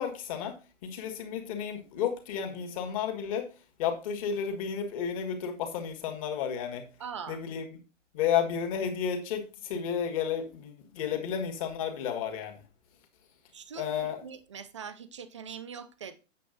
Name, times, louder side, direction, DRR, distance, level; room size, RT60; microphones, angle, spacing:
voice 1, 0.0-3.5 3.8-6.8 7.3-7.7 8.1-12.6 13.8-14.2, left 8 dB, 25° left, 1.7 m, -32 dB
voice 2, 7.0-7.4 13.5-16.2, right 7 dB, 25° right, 0.5 m, -42 dB
8.5 x 6.9 x 3.8 m
hypercardioid pair, 165°, 37 cm